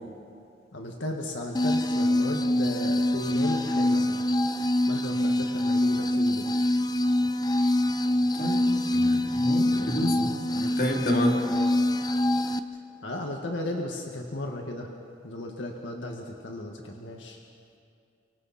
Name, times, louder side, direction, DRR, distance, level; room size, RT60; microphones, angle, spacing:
voice 1, 0.7-4.2 4.9-6.5 9.7-10.5 11.5-11.8 13.0-14.9 15.2-17.4, left 1 dB, 90° left, 1 dB, 1.9 m, -35 dB
sound 1, 1.5-12.6, left 1 dB, 20° left, 0.6 m, -25 dB
voice 2, 8.4-10.3 10.5-11.4, left 1 dB, 55° left, 0 dB, 3.1 m, -29 dB
29.0 x 25.0 x 4.3 m, 2.4 s
head